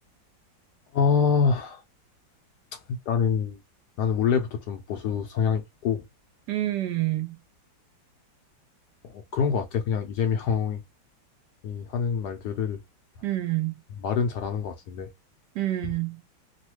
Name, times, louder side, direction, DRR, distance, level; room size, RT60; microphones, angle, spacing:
voice 1, 0.9-1.8 2.7-3.6 4.0-6.0 9.0-10.8 11.6-12.8 13.9-15.1, left 6 dB, 75° left, 1.0 m, -26 dB
voice 2, 6.5-7.4 13.2-13.7 15.5-16.2, right 15 dB, 70° right, 1.1 m, -27 dB
3.1 x 2.2 x 2.9 m
omnidirectional pair, 2.1 m